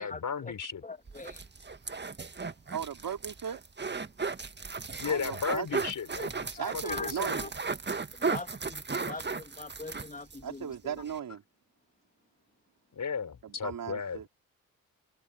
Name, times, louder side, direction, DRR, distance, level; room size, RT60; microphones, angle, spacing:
voice 1, 0.0-0.8 5.0-7.4 12.9-14.2, left 6 dB, 50° left, 5.1 m, -35 dB
voice 2, 0.8-1.4 6.6-7.5 8.3-10.9, left 3 dB, 20° left, 2.9 m, -41 dB
sound 1, 1.1-10.4 10.7-10.8 11.1-11.2, right 4 dB, 25° right, 1.9 m, -35 dB
voice 3, 2.7-3.6 5.1-5.7 6.6-7.5 10.4-11.4 13.4-14.2, right 8 dB, 55° right, 4.6 m, -37 dB
hypercardioid pair, 40°, 40 cm